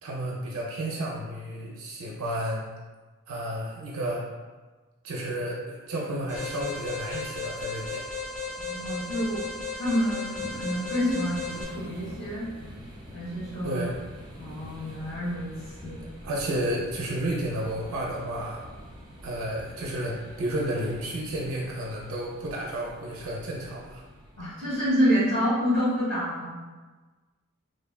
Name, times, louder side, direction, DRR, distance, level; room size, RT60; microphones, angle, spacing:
voice 1, 0.0-2.6 3.3-4.3 5.0-8.0 13.6-14.0 16.2-18.6 19.2-24.0, right 1 dB, 90° right, -3 dB, 0.4 m, -32 dB
S-Bahn Berlin, 6.2-25.2, equal, 20° right, 0.4 m, -47 dB
Alarm, 6.3-11.6, left 4 dB, 35° left, 0.6 m, -35 dB
voice 2, 8.7-9.4 9.7-12.5 13.1-13.8 14.4-15.5 15.8-16.0 24.4-26.5, equal, 75° left, -12 dB, 1.4 m, -27 dB
3.2 x 2.1 x 2.2 m, 1.3 s
head